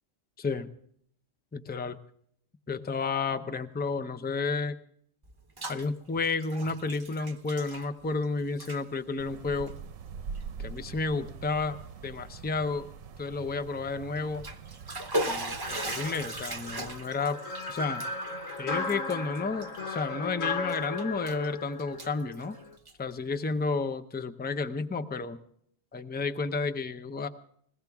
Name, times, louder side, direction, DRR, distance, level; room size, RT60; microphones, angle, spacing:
voice 1, 0.4-0.7 1.5-2.0 2.7-4.8 5.7-9.7 10.6-12.9 13.2-14.4 15.3-17.4 17.7-18.0 18.6-22.6 23.0-25.4 25.9-27.3, left 4 dB, 15° left, 9 dB, 0.4 m, -31 dB
Bathtub (filling or washing), 5.2-5.9 6.1-8.2 8.5-8.8 9.6-9.7 10.3-10.4 10.9-11.0 14.2-20.3 20.7-21.5 21.8-23.1, right 1 dB, 20° right, 0.8 m, -38 dB
sound 1, 9.2-17.0, right 6 dB, 85° right, 1.2 m, -44 dB
sound 2, 15.6-22.8, left 3 dB, 80° left, 1.7 m, -36 dB
21.0 x 16.0 x 3.5 m, 0.65 s
omnidirectional pair, 1.3 m